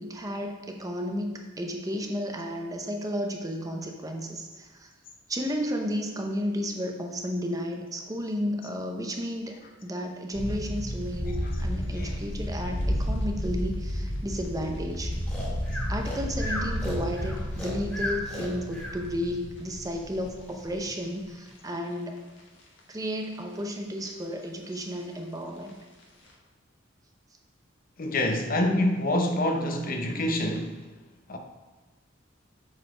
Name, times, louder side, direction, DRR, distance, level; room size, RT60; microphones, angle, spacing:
voice 1, 0.0-4.9 5.3-15.2 15.9-22.2 22.9-25.7, equal, 20° right, 2 dB, 0.7 m, -33 dB
sound 1, 10.3-21.8 22.2-22.3 22.8-23.6 23.9-24.1 24.4-25.7 26.0-26.3, equal, 65° left, 1.4 m, -32 dB
Breathing, 15.3-19.0, left 1 dB, 10° left, 2.3 m, -35 dB
voice 2, 28.0-30.7 31.3-31.4, left 1 dB, 45° left, 4 dB, 0.8 m, -26 dB
7.5 x 4.2 x 4.9 m, 1.2 s
head